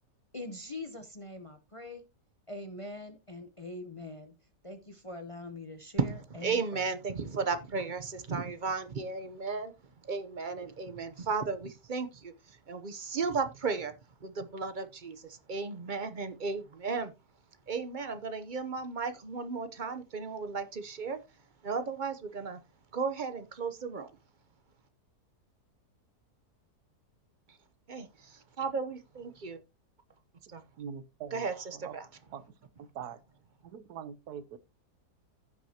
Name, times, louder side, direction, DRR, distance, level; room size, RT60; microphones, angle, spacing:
voice 1, 0.3-2.0 2.5-4.3 4.6-6.8, left 2 dB, 25° left, 0.7 m, -43 dB
voice 2, 6.0-9.7 10.0-13.9 14.2-17.1 17.7-21.2 21.6-22.6 22.9-24.1 27.9-29.6 30.5-30.6 31.3-32.1, right 4 dB, 40° right, 0.7 m, -35 dB
voice 3, 30.4-31.5 31.7-31.9 32.3-32.4 32.8-33.2 33.6-34.6, right 8 dB, 70° right, 1.4 m, -43 dB
15.5 x 6.1 x 2.8 m
omnidirectional pair, 1.8 m